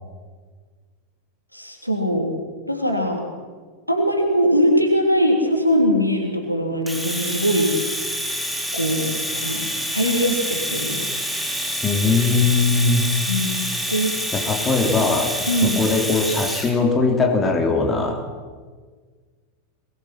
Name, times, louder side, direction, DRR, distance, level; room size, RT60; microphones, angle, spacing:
voice 1, 1.5-2.4 2.7-3.2 3.9-7.7 8.7-11.0 13.3-14.1 15.5-15.8, equal, 90° left, 2 dB, 3.2 m, -21 dB
Domestic sounds home sounds, 6.9-16.7, equal, ahead, 3.0 m, -27 dB
voice 2, 11.8-13.1 14.3-15.4 15.6-18.2, left 3 dB, 20° left, 2 dB, 3.3 m, -20 dB
22.5 x 19.5 x 6.0 m, 1.5 s
figure-of-eight pair, 90°, 0 cm